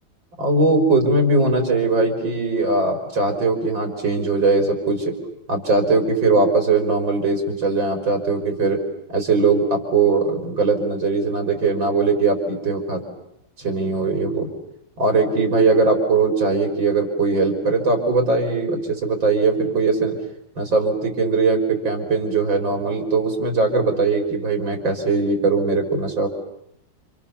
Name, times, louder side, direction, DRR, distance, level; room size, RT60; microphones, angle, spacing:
voice 1, 0.4-5.1 5.5-8.8 9.1-13.0 13.6-14.5 15.0-20.1 20.6-26.3, right 3 dB, 80° right, 4 dB, 5.1 m, -20 dB
29.5 x 27.5 x 7.0 m, 0.76 s
omnidirectional pair, 2.1 m